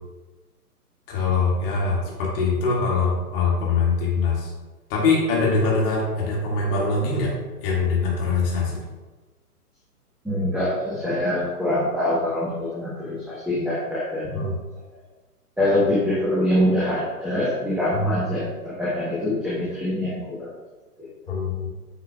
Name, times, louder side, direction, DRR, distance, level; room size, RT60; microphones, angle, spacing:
voice 1, 1.1-4.5 4.9-7.3 7.6-8.8 14.3-14.5 17.9-18.2 21.3-21.7, left 4 dB, 35° left, -4 dB, 2.2 m, -23 dB
voice 2, 10.2-14.5 15.6-20.5 21.0-21.4, left 1 dB, ahead, -10 dB, 1.1 m, -24 dB
9.1 x 5.5 x 2.4 m, 1.2 s
figure-of-eight pair, 125°, 46 cm